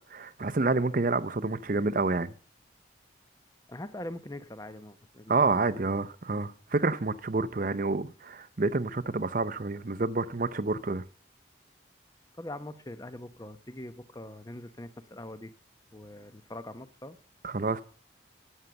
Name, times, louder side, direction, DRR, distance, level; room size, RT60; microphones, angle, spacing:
voice 1, 0.1-2.3 5.3-11.0 17.4-17.8, right 3 dB, 45° right, 0.7 m, -28 dB
voice 2, 3.7-5.8 12.4-15.5 15.9-17.2, left 1 dB, 20° left, 0.8 m, -42 dB
11.5 x 9.2 x 6.9 m
head